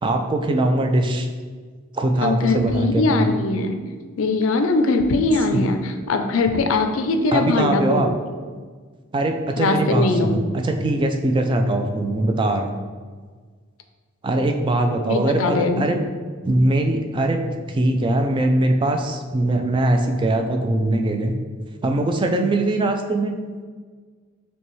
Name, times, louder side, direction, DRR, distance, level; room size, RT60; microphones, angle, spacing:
voice 1, 0.0-1.3 1.9-3.3 5.5-5.6 7.3-8.1 9.1-12.8 14.2-16.0 16.4-21.3 21.8-23.4, right 1 dB, 25° right, 4 dB, 0.3 m, -21 dB
voice 2, 2.2-3.7 4.2-8.1 9.6-10.4 15.1-15.8, left 3 dB, 70° left, 6 dB, 0.4 m, -21 dB
6.7 x 2.2 x 3.1 m, 1.5 s
head